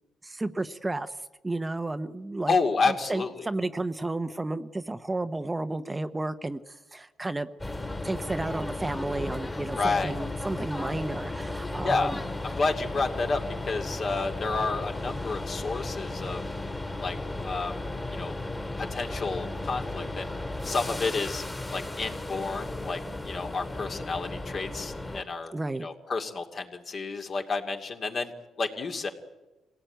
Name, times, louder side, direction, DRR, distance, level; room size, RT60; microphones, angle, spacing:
voice 1, 0.2-1.1 1.4-2.5 2.9-7.5 8.0-12.2 25.5-25.9, right 2 dB, 15° right, 10 dB, 0.8 m, -32 dB
voice 2, 2.5-3.4 9.8-10.1 11.8-12.1 12.4-16.4 17.0-17.8 18.1-18.4 18.8-20.3 20.6-21.4 21.7-25.5 25.8-28.3 28.6-29.1, left 4 dB, 50° left, 4 dB, 2.4 m, -30 dB
sound 1, 7.6-25.2, left 2 dB, 15° left, 2.2 m, -35 dB
24.5 x 17.0 x 9.2 m, 1.1 s
cardioid pair, 90°, 0 cm